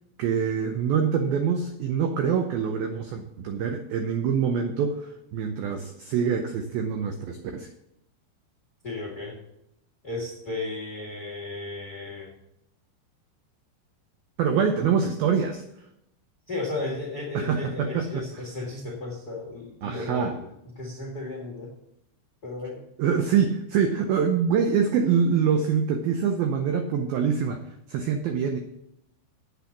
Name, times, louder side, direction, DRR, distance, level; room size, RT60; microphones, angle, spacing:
voice 1, 0.2-7.7 14.4-15.6 17.3-18.4 19.8-20.4 23.0-27.6 27.9-28.6, right 7 dB, 85° right, 6 dB, 2.0 m, -25 dB
voice 2, 8.8-9.4 10.0-12.3 16.5-20.5 20.8-21.7 22.4-22.8, left 2 dB, 65° left, 0 dB, 0.9 m, -34 dB
8.4 x 8.1 x 7.1 m, 0.80 s
omnidirectional pair, 5.3 m